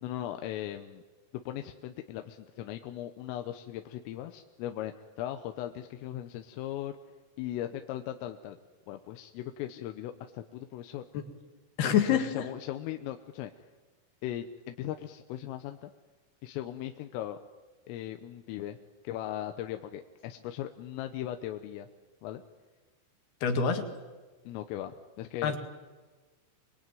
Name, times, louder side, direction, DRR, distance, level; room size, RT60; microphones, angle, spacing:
voice 1, 0.0-1.0 1.3-6.9 7.4-8.6 8.9-11.0 11.8-13.5 14.2-15.9 16.4-17.4 17.9-18.8 19.1-21.9 22.2-22.4 24.5-25.5, left 12 dB, 80° left, 6 dB, 3.6 m, -38 dB
voice 2, 11.8-12.3 23.4-23.9 25.4-25.6, left 7 dB, 60° left, 6 dB, 3.6 m, -25 dB
26.0 x 22.0 x 9.2 m, 1.3 s
omnidirectional pair, 5.9 m